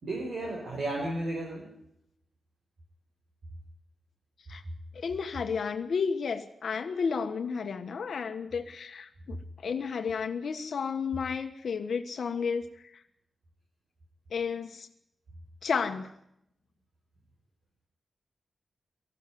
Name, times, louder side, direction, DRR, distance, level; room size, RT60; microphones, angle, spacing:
voice 1, 0.0-1.7, right 2 dB, 55° right, -1 dB, 4.9 m, -33 dB
voice 2, 4.9-9.4 9.6-13.0 14.3-14.9 15.6-16.1, left 5 dB, 65° left, 6 dB, 1.4 m, -32 dB
19.0 x 15.0 x 9.4 m, 0.78 s
wide cardioid pair, 180°, 0 cm